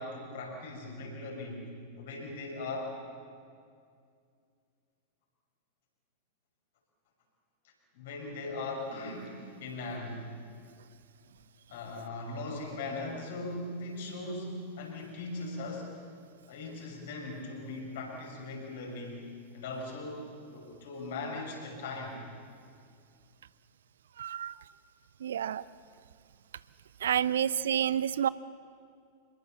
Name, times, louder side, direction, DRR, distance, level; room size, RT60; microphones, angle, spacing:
voice 1, 0.0-1.7 2.0-3.0 7.6-10.4 11.7-16.0 16.5-22.2, left 2 dB, 55° left, 0 dB, 6.6 m, -39 dB
voice 2, 24.2-24.5 25.2-25.6 27.0-28.3, right 9 dB, 65° right, 19 dB, 0.5 m, -29 dB
26.5 x 21.5 x 7.2 m, 2.3 s
figure-of-eight pair, 90°, 0 cm